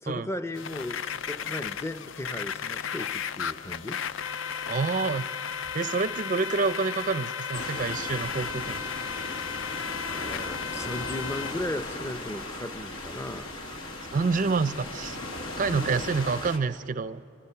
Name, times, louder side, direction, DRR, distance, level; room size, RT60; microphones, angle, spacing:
voice 1, 0.0-4.0 10.1-13.5 15.7-15.9, left 1 dB, 15° left, 10 dB, 0.6 m, -36 dB
sound 1, 0.5-11.5, left 7 dB, 65° left, 0.4 m, -34 dB
voice 2, 4.7-5.3 5.7-8.8 14.1-15.2 15.6-17.2, right 4 dB, 40° right, 15 dB, 0.4 m, -27 dB
sound 2, 7.5-16.6, left 2 dB, 85° left, 1.8 m, -37 dB
29.0 x 24.0 x 5.7 m, 2.8 s
head